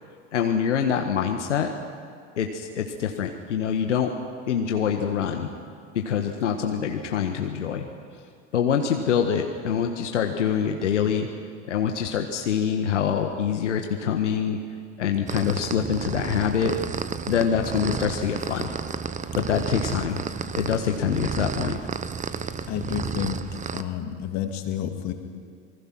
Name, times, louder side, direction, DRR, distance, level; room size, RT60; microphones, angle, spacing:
voice 1, 0.3-1.7 2.4-4.1 4.5-5.5 5.9-7.8 8.5-11.3 11.7-14.6 15.0-16.7 17.3-18.7 19.3-20.2 20.5-21.8, left 8 dB, 80° left, 3 dB, 1.5 m, -25 dB
sound 1, 15.3-23.8, right 6 dB, 20° right, 1.0 m, -31 dB
voice 2, 22.3-23.4 23.7-25.1, left 9 dB, 50° left, 5 dB, 2.6 m, -30 dB
26.5 x 20.5 x 6.1 m, 2.1 s
hypercardioid pair, 85°, 35 cm